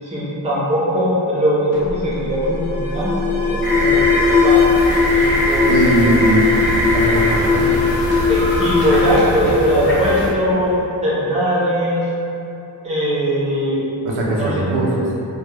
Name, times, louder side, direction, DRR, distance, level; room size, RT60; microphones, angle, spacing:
voice 1, 0.0-4.6 5.1-5.7 8.3-12.1 12.8-13.8 14.3-14.6, equal, 15° right, -8 dB, 0.5 m, -20 dB
Alarm, 1.7-10.3, left 4 dB, 80° left, 0.8 m, -19 dB
sound 1, 3.6-10.3, equal, 55° left, 0.9 m, -22 dB
voice 2, 5.6-6.5 6.9-7.7 14.0-15.1, right 2 dB, 85° right, -4 dB, 0.6 m, -19 dB
2.2 x 2.0 x 3.0 m, 2.8 s
wide cardioid pair, 160°, 45 cm